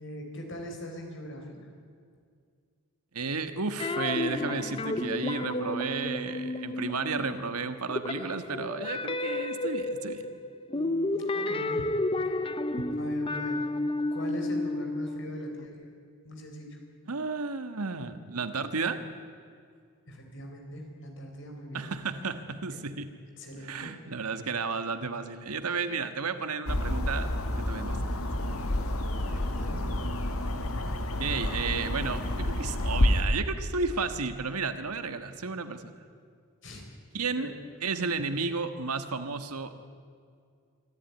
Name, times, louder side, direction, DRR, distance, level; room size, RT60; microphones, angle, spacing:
voice 1, 0.0-1.7 10.7-11.9 13.0-13.7 14.1-15.9 16.2-16.8 20.1-21.9 22.7-22.8 23.4-23.9 25.7-25.9 29.3-29.8 36.6-36.8 37.4-37.5, equal, 55° left, 3 dB, 4.3 m, -41 dB
voice 2, 3.1-10.2 17.1-19.0 21.7-23.1 23.6-27.3 27.6-28.1 31.2-35.9 37.1-37.5 37.8-39.7, right 4 dB, 90° right, 9 dB, 1.5 m, -33 dB
sound 1, 3.8-7.5 7.8-15.7, left 2 dB, 25° left, 0.7 m, -32 dB
sound 2, 26.7-33.2, left 1 dB, 75° left, 1.7 m, -29 dB
24.5 x 14.0 x 9.4 m, 2.2 s
head